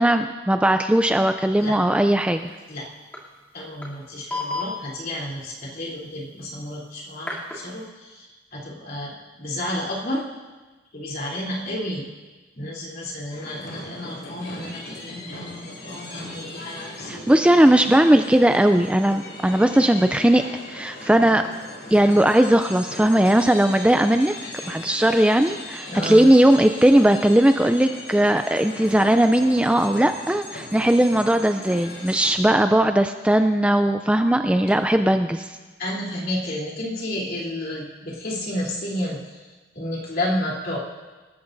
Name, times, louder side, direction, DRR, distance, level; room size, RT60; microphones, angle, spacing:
voice 1, 0.0-2.5 17.1-20.4 20.7-21.4 21.9-24.3 24.7-35.6, right 1 dB, 5° right, 7 dB, 0.4 m, -18 dB
sound 1, 2.4-2.5 2.9-3.0 3.1-3.2 3.8-3.9 4.3-4.7 7.2-7.6, left 3 dB, 10° left, 2.8 m, -30 dB
voice 2, 3.5-10.3 10.9-12.1 12.5-17.5 25.9-26.3 35.8-40.8, left 1 dB, 55° left, -4 dB, 3.4 m, -31 dB
sound 2, 13.3-32.3, left 1 dB, 75° left, 3.8 m, -38 dB
26.0 x 13.5 x 2.6 m, 1.3 s
head